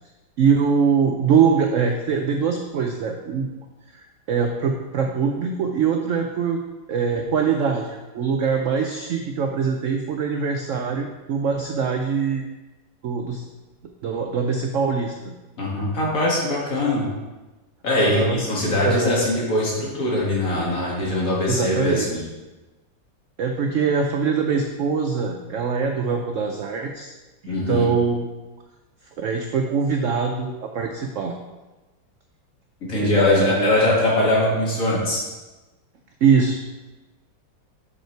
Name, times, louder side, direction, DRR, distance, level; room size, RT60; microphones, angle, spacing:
voice 1, 0.4-3.5 3.9-6.6 6.9-12.4 13.0-13.4 14.0-15.3 18.0-18.4 18.7-19.1 21.5-22.2 23.4-27.1 27.4-28.3 29.2-31.4 33.0-33.8 36.2-36.6, right 6 dB, 80° right, 3 dB, 0.7 m, -23 dB
voice 2, 15.6-17.1 17.8-22.2 27.5-27.9 32.8-35.2, left 1 dB, 45° left, -4 dB, 2.2 m, -21 dB
6.8 x 5.3 x 4.5 m, 1.1 s
omnidirectional pair, 2.0 m